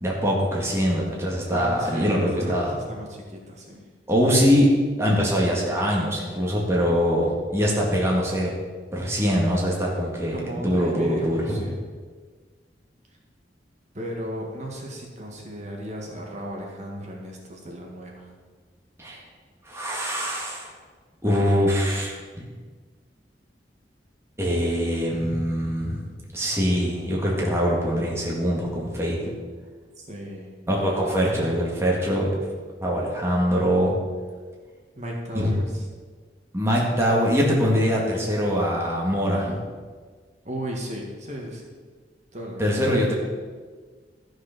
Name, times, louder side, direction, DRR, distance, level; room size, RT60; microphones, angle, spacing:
voice 1, 0.0-2.7 4.1-4.7 5.0-8.5 8.9-11.7 19.0-19.2 19.7-20.7 21.2-22.1 24.4-26.0 26.3-29.2 30.7-32.3 32.8-34.0 35.3-35.5 36.5-39.6 42.6-43.1, equal, 15° right, -4 dB, 1.9 m, -23 dB
voice 2, 1.5-3.8 10.3-11.8 13.9-18.3 30.0-30.5 35.0-35.9 40.4-41.6 42.3-42.7, equal, 40° right, -1 dB, 1.9 m, -35 dB
13.0 x 6.3 x 5.9 m, 1.5 s
head